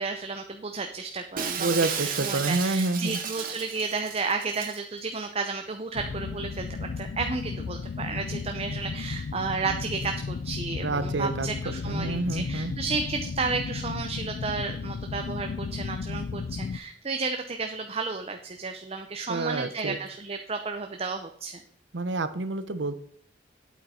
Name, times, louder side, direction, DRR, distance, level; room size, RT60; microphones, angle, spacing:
voice 1, 0.0-21.6, right 4 dB, 35° right, 5 dB, 0.7 m, -32 dB
Shatter, 1.4-4.8, right 7 dB, 50° right, 1.3 m, -33 dB
voice 2, 1.6-3.2 10.8-12.7 19.3-20.0 21.9-23.0, right 2 dB, 75° right, 12 dB, 0.8 m, -28 dB
sound 1, 5.9-16.8, left 4 dB, 65° left, 0.4 m, -34 dB
8.6 x 8.4 x 4.3 m, 0.64 s
head